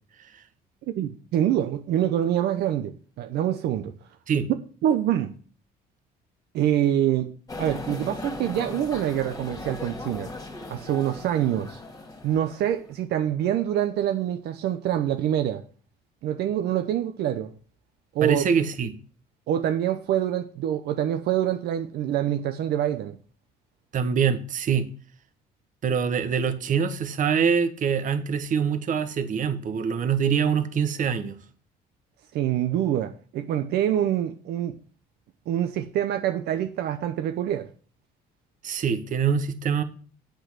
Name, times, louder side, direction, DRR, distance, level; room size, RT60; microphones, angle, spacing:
voice 1, 0.9-3.9 4.8-5.3 6.5-10.3 10.7-11.8 12.2-15.6 16.2-17.5 18.1-18.4 19.5-23.2 32.3-34.8 35.5-37.7, right 11 dB, 75° right, 0.9 m, -25 dB
sound 1, 7.5-12.9, left 2 dB, 20° left, 2.3 m, -38 dB
voice 2, 18.2-18.9 23.9-24.9 25.8-31.4 38.6-39.8, right 7 dB, 50° right, 1.3 m, -24 dB
7.9 x 6.6 x 6.2 m
cardioid pair, 110°, 17 cm